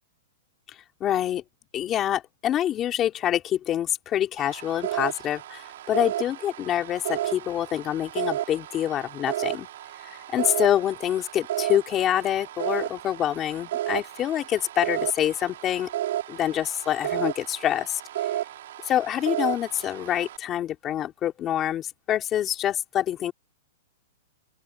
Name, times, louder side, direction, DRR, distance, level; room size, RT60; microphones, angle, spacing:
voice 1, 1.0-1.4 1.7-9.7 10.0-15.9 16.3-18.0 18.8-23.3, left 11 dB, 20° left, 3.2 m, -26 dB
sound 1, 4.4-20.4, right 13 dB, 65° right, 4.9 m, -33 dB
open air
hypercardioid pair, 160°, 0 cm